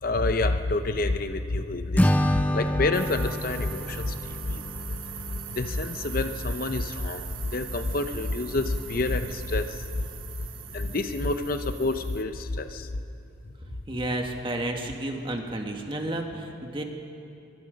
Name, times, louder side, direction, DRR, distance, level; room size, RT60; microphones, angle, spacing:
voice 1, 0.0-4.7 5.5-9.9 10.7-12.9, left 2 dB, 45° left, 8 dB, 0.7 m, -28 dB
Acoustic guitar / Strum, 2.0-5.2, equal, 10° left, 0.6 m, -27 dB
sound 1, 2.9-12.2, right 8 dB, 80° right, 1.3 m, -41 dB
voice 2, 13.6-16.8, right 1 dB, 25° right, 2 dB, 1.9 m, -32 dB
23.0 x 22.5 x 5.3 m, 2.7 s
head